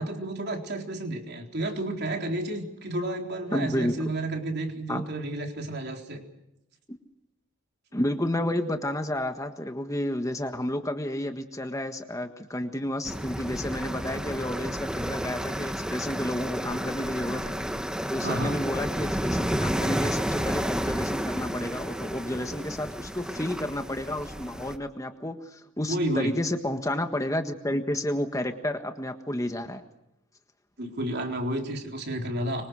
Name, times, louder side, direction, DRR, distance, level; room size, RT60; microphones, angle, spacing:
voice 1, 0.0-6.2 18.2-18.5 25.9-26.4 30.8-32.7, right 1 dB, 50° right, 3 dB, 3.9 m, -31 dB
voice 2, 3.5-3.9 4.9-5.0 6.9-7.0 7.9-17.6 18.1-29.8, left 1 dB, 15° left, 6 dB, 1.5 m, -31 dB
sound 1, 13.0-24.8, equal, 5° right, 1.2 m, -31 dB
25.0 x 25.0 x 6.4 m, 0.86 s
head